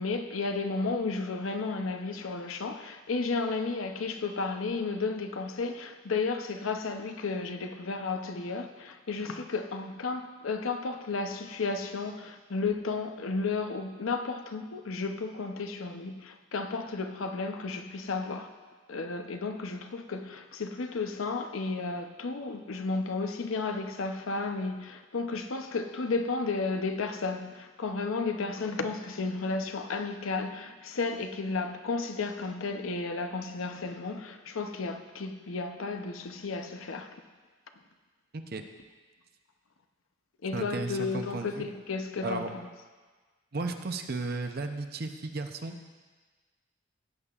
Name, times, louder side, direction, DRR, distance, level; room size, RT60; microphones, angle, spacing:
voice 1, 0.0-18.5 18.9-37.1 40.4-42.7, left 3 dB, 85° left, 0.7 m, -33 dB
voice 2, 40.5-41.6 42.2-42.5 43.5-45.8, right 3 dB, 50° right, 0.7 m, -34 dB
16.0 x 8.4 x 2.4 m
head